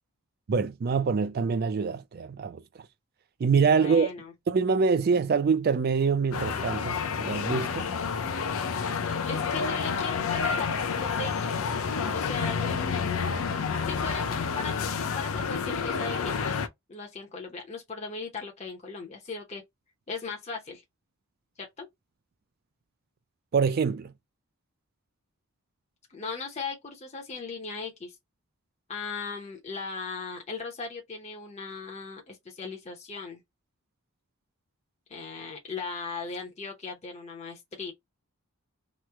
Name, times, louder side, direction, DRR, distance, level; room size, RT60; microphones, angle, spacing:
voice 1, 0.5-2.6 3.4-4.1 4.5-7.9 23.5-24.1, right 5 dB, 45° right, 0.3 m, -25 dB
voice 2, 3.7-4.3 9.3-11.6 12.1-12.7 13.9-16.6 16.9-19.6 20.1-20.8 21.6-21.9 26.1-28.2 28.9-33.4 35.1-37.9, left 4 dB, 30° left, 0.6 m, -38 dB
sound 1, 6.3-16.7, left 5 dB, 70° left, 0.5 m, -29 dB
3.0 x 2.0 x 3.3 m
head